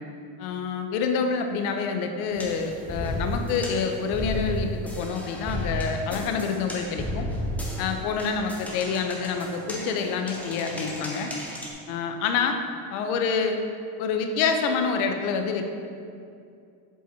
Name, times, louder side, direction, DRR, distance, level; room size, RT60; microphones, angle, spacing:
voice 1, 0.4-7.3 7.8-11.3 11.9-12.6 12.9-13.6 14.0-15.6, left 5 dB, 60° left, 5 dB, 0.8 m, -27 dB
sound 1, 2.3-11.7, equal, 5° left, 0.5 m, -33 dB
7.1 x 4.5 x 4.2 m, 2.5 s
supercardioid pair, 150°, 48 cm